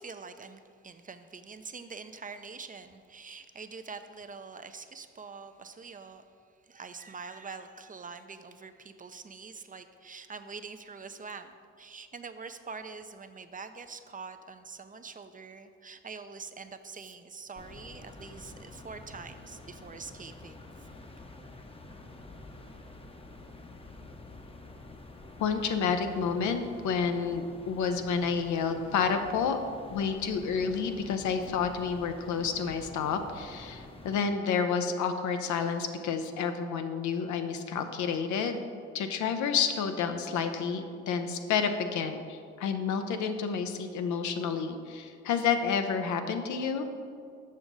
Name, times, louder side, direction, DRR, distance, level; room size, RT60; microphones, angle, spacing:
voice 1, 0.0-6.2 6.6-20.7, right 4 dB, 30° right, 9 dB, 0.4 m, -45 dB
sound 1, 17.5-34.2, left 2 dB, 20° left, 0.7 m, -48 dB
voice 2, 25.4-29.6 29.9-38.6 38.9-46.9, left 6 dB, 80° left, 7 dB, 0.6 m, -30 dB
6.4 x 6.0 x 3.9 m, 2.2 s
supercardioid pair, 60°, 29 cm